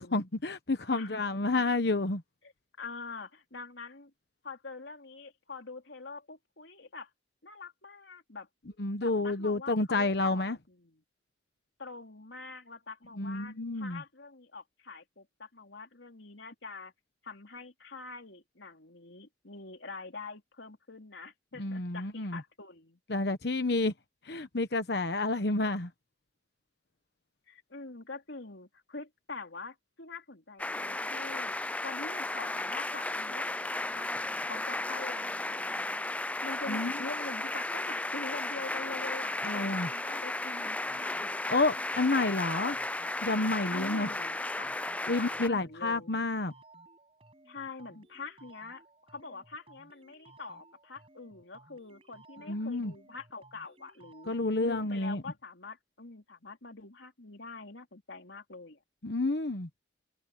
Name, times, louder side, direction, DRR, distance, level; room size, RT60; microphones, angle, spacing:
voice 1, 0.0-2.2 8.8-10.6 13.2-14.0 21.6-22.4 23.1-23.9 24.2-25.9 36.7-36.9 39.4-39.9 41.5-42.8 43.2-44.1 45.1-46.5 52.5-52.9 54.3-55.2 59.0-59.7, left 2 dB, 60° left, 1.1 m, -29 dB
voice 2, 0.9-1.5 2.8-4.1 4.4-7.1 7.4-8.5 9.0-11.0 11.8-16.9 17.2-23.0 27.5-31.6 31.8-34.1 34.4-41.4 43.7-44.8 45.1-46.3 47.5-48.8 49.1-54.3 54.6-58.8, left 3 dB, 85° left, 3.5 m, -45 dB
sound 1, 30.6-45.5, left 2 dB, 10° left, 0.3 m, -34 dB
sound 2, 40.6-55.0, right 2 dB, 30° right, 7.9 m, -58 dB
head